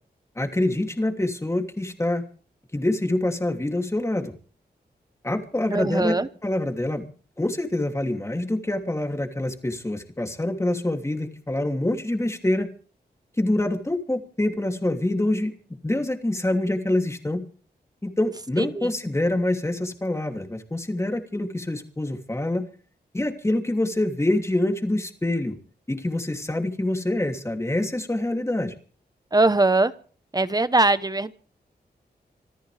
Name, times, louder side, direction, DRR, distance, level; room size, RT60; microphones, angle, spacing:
voice 1, 0.4-2.2 2.7-4.3 5.2-6.2 6.4-7.1 7.4-12.7 13.4-15.5 15.8-17.5 18.0-22.7 23.1-25.6 25.9-28.7, left 1 dB, 15° left, 4 dB, 2.9 m, -25 dB
voice 2, 5.7-6.3 18.6-18.9 29.3-29.9 30.3-31.3, right 2 dB, 25° right, 14 dB, 1.0 m, -21 dB
26.5 x 14.0 x 3.5 m, 0.41 s
wide cardioid pair, 75°, 17 cm